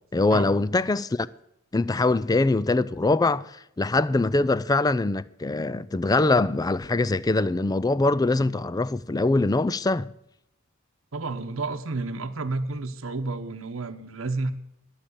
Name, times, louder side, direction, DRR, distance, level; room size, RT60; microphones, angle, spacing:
voice 1, 0.1-1.3 1.7-10.1, left 2 dB, 20° left, 0.4 m, -23 dB
voice 2, 11.1-14.5, right 3 dB, 70° right, 0.9 m, -31 dB
12.5 x 7.5 x 8.4 m
head